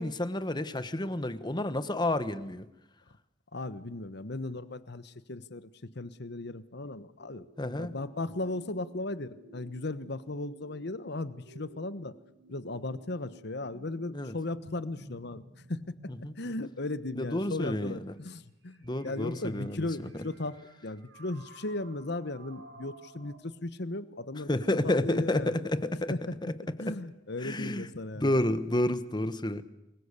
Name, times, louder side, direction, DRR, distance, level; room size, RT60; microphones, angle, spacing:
voice 1, 0.0-2.6 7.6-7.9 14.1-14.3 16.1-16.3 17.2-18.1 18.8-19.9 24.5-26.1 26.4-27.0 27.4-27.9 28.2-29.6, left 1 dB, 25° left, 12 dB, 1.3 m, -30 dB
voice 2, 3.5-7.5 7.7-12.2 12.5-15.4 15.7-15.8 16.4-24.5 24.8-25.6 26.1-26.4 26.8-28.4, left 2 dB, 60° left, 14 dB, 1.2 m, -36 dB
sound 1, 7.2-23.4, right 1 dB, 70° right, 5.3 m, -54 dB
28.5 x 21.5 x 6.8 m, 0.89 s
head